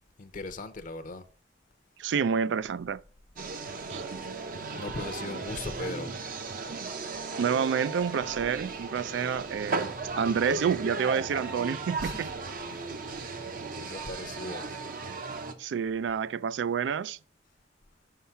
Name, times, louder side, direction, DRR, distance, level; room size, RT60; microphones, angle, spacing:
voice 1, 0.2-1.2 4.7-6.1 12.0-12.4 12.7-12.9 13.7-14.8, left 2 dB, 45° left, 0.6 m, -39 dB
voice 2, 2.0-3.0 3.9-4.0 7.4-12.3 15.6-17.2, right 7 dB, 80° right, 0.3 m, -29 dB
sound 1, 3.4-15.5, right 3 dB, 50° right, 0.7 m, -36 dB
5.7 x 5.6 x 5.6 m
head